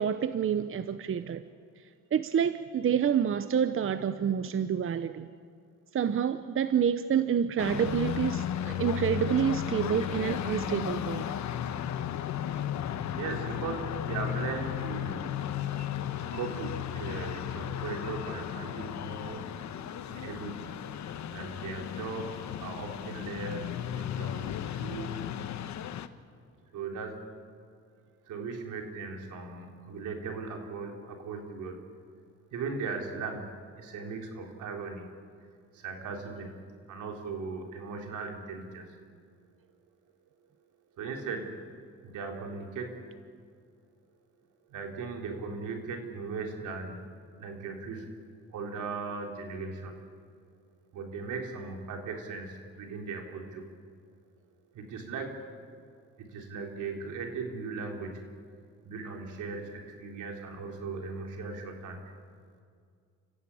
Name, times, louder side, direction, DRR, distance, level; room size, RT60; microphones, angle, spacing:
voice 1, 0.0-1.4 2.1-5.3 5.9-11.3, right 8 dB, 45° right, 12 dB, 0.8 m, -28 dB
sound 1, 7.6-26.1, left 10 dB, 65° left, 1.1 m, -35 dB
voice 2, 13.2-15.4 16.2-19.5 20.1-20.8 21.3-23.6 23.9-25.2 26.7-27.2 28.3-31.8 32.5-35.1 35.7-38.9 41.0-41.6 42.0-43.0 44.7-47.1 47.4-48.2 48.5-50.0 50.9-53.7 54.7-55.5 56.2-58.3 58.8-62.1, right 4 dB, 80° right, 2 dB, 3.7 m, -38 dB
29.0 x 15.5 x 8.5 m, 2.2 s
cardioid pair, 90°, 30 cm